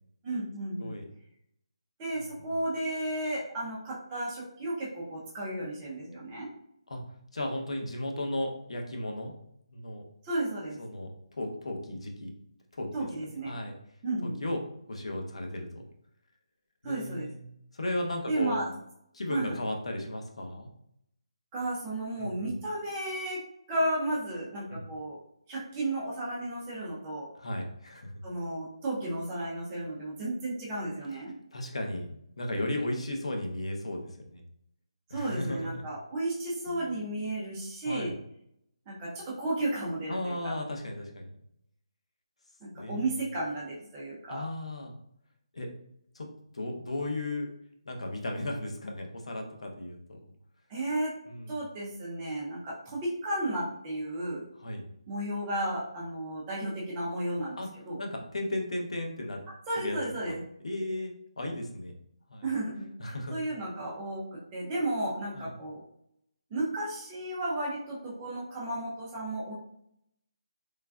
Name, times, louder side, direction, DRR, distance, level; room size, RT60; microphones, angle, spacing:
voice 1, 0.2-0.9 2.0-6.5 10.2-10.8 12.9-13.5 14.0-14.4 16.8-17.3 18.3-18.7 19.3-19.6 21.5-23.4 23.7-25.2 25.5-27.3 28.2-31.3 35.1-38.2 38.9-40.5 42.6-44.5 50.7-51.1 51.5-54.5 55.1-58.0 59.7-60.4 62.4-65.8 66.5-69.5, right 1 dB, 10° right, -6 dB, 0.4 m, -33 dB
voice 2, 7.3-9.3 9.7-10.0 10.8-11.1 11.4-12.3 12.8-13.1 13.5-13.7 14.2-14.6 14.9-15.8 16.8-17.4 17.7-18.6 19.1-20.7 22.2-22.5 24.7-24.8 27.4-28.2 31.5-34.4 35.1-35.8 36.7-37.0 37.9-38.1 40.1-41.3 42.7-43.1 44.3-44.9 45.5-45.7 46.1-46.3 46.5-47.5 47.9-50.3 51.3-51.5 54.6-54.9 57.6-57.7 58.0-59.4 59.8-60.0 60.3-60.4 60.6-61.9 62.3-62.5 63.0-63.3 65.3-65.5, left 1 dB, 75° left, 2 dB, 0.6 m, -35 dB
3.2 x 2.3 x 2.3 m, 0.73 s
hypercardioid pair, 175°, 3 cm